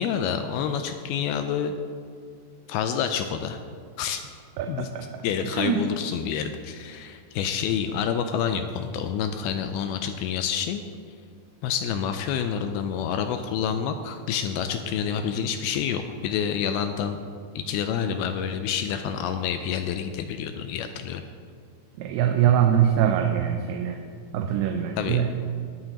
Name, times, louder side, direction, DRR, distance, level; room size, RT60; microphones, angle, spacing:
voice 1, 0.0-1.7 2.7-3.6 4.0-4.2 4.7-4.9 5.2-10.8 11.6-17.2 17.6-21.2 25.0-25.3, left 8 dB, 85° left, 7 dB, 2.3 m, -28 dB
voice 2, 4.6-5.8 22.0-24.0 24.3-25.3, right 9 dB, 85° right, 5 dB, 2.7 m, -23 dB
22.0 x 7.7 x 3.0 m, 2.2 s
omnidirectional pair, 4.8 m